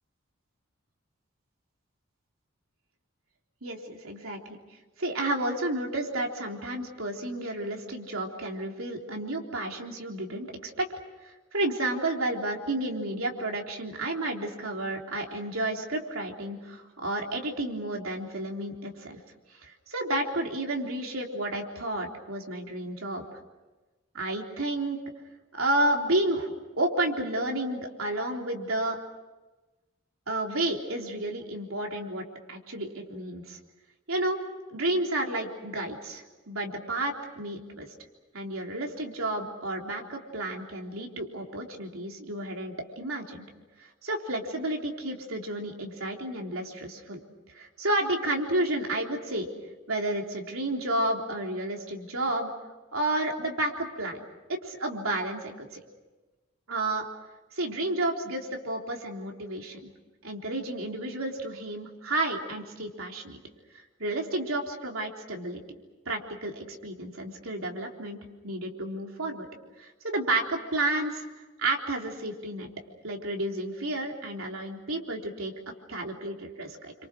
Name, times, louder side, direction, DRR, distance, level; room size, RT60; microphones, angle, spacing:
voice 1, 3.6-4.6 5.0-10.9 11.2-19.2 19.6-23.2 24.1-25.0 25.5-29.0 30.3-33.6 34.1-34.4 34.7-37.9 38.3-43.5 43.8-47.2 47.5-49.5 49.9-52.5 52.9-54.2 54.5-55.8 56.7-57.1 57.5-59.9 60.2-63.4 64.0-65.6 66.1-68.2 68.4-69.5 69.8-71.2 71.6-72.7 73.0-75.5 75.9-76.9, right 1 dB, 85° right, 1 dB, 3.7 m, -31 dB
29.0 x 26.0 x 6.3 m, 1.2 s
head